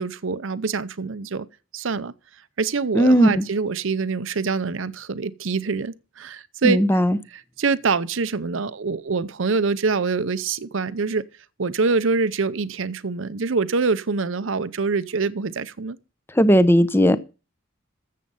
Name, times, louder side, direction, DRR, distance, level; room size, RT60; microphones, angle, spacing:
voice 1, 0.0-1.5 1.7-2.1 2.6-6.8 7.3-11.2 11.6-16.0, right 4 dB, 65° right, 0.7 m, -25 dB
voice 2, 2.9-3.4 6.6-7.2 16.4-17.2, equal, 10° left, 0.7 m, -16 dB
14.0 x 7.6 x 5.5 m
head